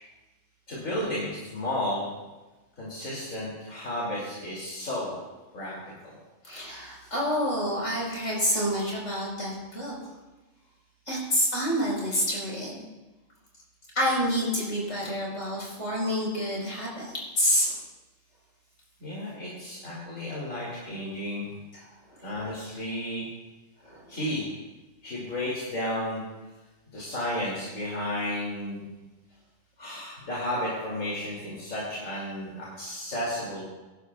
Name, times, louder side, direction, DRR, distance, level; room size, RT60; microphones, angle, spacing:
voice 1, 0.7-2.1 2.8-5.1 5.5-5.7 6.0-6.1 19.0-21.5 22.2-23.3 24.1-24.4 25.0-26.2 26.9-28.8 29.8-33.6, left 1 dB, 85° left, -6 dB, 3.0 m, -32 dB
voice 2, 6.4-10.1 11.1-12.8 13.9-17.8 21.7-22.2 23.8-24.1, equal, 70° left, -3 dB, 4.7 m, -28 dB
22.0 x 11.5 x 2.3 m, 1.2 s
omnidirectional pair, 1.3 m